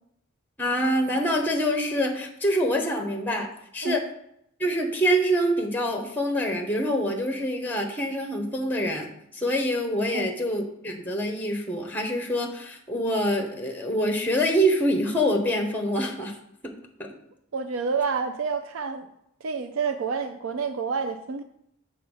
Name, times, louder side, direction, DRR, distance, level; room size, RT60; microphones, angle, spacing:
voice 1, 0.6-3.5 3.7-4.0 4.6-16.4 17.0-17.1, equal, 10° left, 4 dB, 1.0 m, -25 dB
voice 2, 17.5-19.1 19.4-21.4, right 5 dB, 75° right, 8 dB, 0.5 m, -28 dB
7.1 x 3.6 x 6.2 m, 0.77 s
head